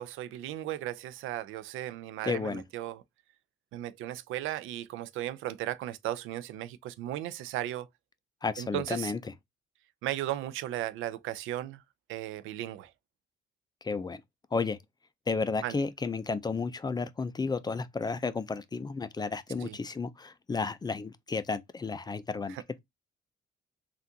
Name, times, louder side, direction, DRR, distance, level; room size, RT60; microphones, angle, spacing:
voice 1, 0.0-3.0 3.7-7.9 8.6-9.1 10.0-11.8 12.1-12.9 15.6-15.7 19.6-19.8 22.5-22.6, right 13 dB, 85° right, 0.4 m, -36 dB
voice 2, 2.2-2.6 8.4-9.2 13.8-14.2 14.5-14.8 15.3-22.8, left 4 dB, 20° left, 0.4 m, -32 dB
3.5 x 2.4 x 2.7 m
cardioid pair, 90°, 20 cm